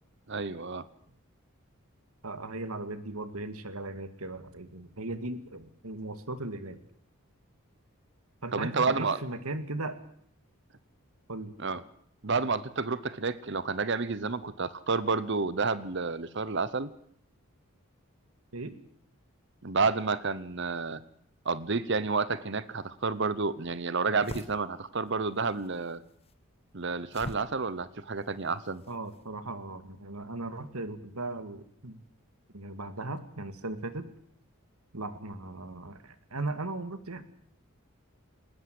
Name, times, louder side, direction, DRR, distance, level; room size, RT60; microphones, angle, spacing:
voice 1, 0.3-0.8 8.5-9.2 11.6-11.8 12.2-16.9 19.6-21.0 21.4-26.0 26.7-28.8, right 4 dB, 55° right, 16 dB, 0.9 m, -30 dB
voice 2, 2.2-6.8 8.4-10.0 11.3-11.6 18.5-18.7 28.9-32.0 32.5-34.1 34.9-37.2, right 2 dB, 80° right, 11 dB, 2.2 m, -37 dB
sound 1, 22.9-29.3, left 1 dB, 25° left, 1.1 m, -48 dB
20.0 x 19.5 x 7.8 m, 0.66 s
head